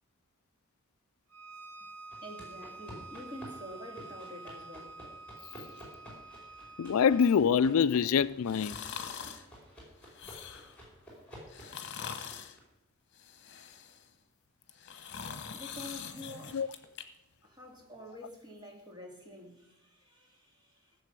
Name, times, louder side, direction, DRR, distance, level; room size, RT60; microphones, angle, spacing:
Bowed string instrument, 1.3-7.3, right 3 dB, 65° right, 1.3 m, -48 dB
sound 1, 2.1-12.6, equal, 5° left, 4.9 m, -52 dB
voice 1, 2.2-5.0 15.4-16.8 17.4-21.0, left 1 dB, 20° right, 2.5 m, -48 dB
voice 2, 6.8-8.8 16.5-16.7, left 7 dB, 70° left, 0.4 m, -25 dB
sound 2, 8.5-9.5 10.0-10.8 11.5-12.6 13.1-14.1 14.6-17.0 17.4-17.5, left 7 dB, 55° left, 1.1 m, -43 dB
16.0 x 7.6 x 6.8 m
head